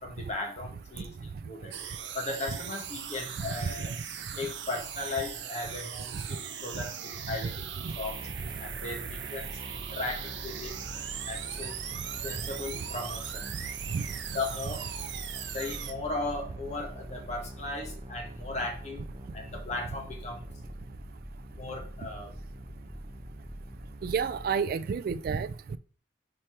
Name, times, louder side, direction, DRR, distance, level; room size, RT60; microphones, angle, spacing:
voice 1, 0.0-1.8 2.1-3.9 4.4-8.2 8.6-10.7 11.3-11.8 12.2-13.6 14.3-14.9 15.4-19.0 19.3-20.4 21.5-22.3, left 2 dB, 40° left, 1 dB, 1.5 m, -37 dB
sound 1, 1.7-15.9, right 9 dB, 75° right, 0.7 m, -39 dB
voice 2, 3.4-3.7 6.7-6.8 7.8-7.9 13.9-14.1 24.0-25.8, right 6 dB, 55° right, 15 dB, 0.3 m, -30 dB
sound 2, 7.8-24.6, right 1 dB, 25° right, 0.8 m, -43 dB
5.1 x 4.4 x 4.4 m, 0.40 s
head